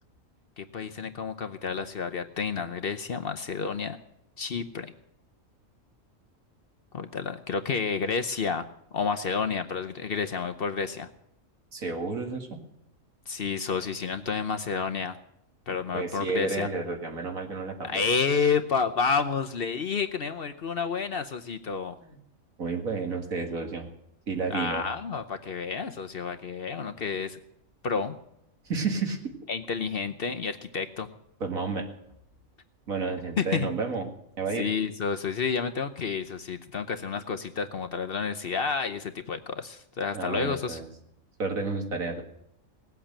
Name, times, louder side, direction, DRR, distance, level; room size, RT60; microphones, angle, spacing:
voice 1, 0.6-4.0 4.4-4.9 6.9-8.7 8.9-11.1 13.3-15.2 15.7-16.7 17.8-22.0 24.5-27.4 27.8-28.1 29.5-31.1 33.4-33.7 34.6-40.8, left 5 dB, 50° left, 7 dB, 0.9 m, -30 dB
voice 2, 11.7-12.6 15.9-18.0 22.0-22.2 22.6-23.9 24.3-24.9 28.7-29.2 31.4-31.9 32.9-34.1 34.4-34.7 40.1-40.9 41.4-42.2, right 4 dB, 80° right, 3 dB, 2.4 m, -31 dB
18.5 x 8.1 x 8.7 m, 0.78 s
omnidirectional pair, 1.4 m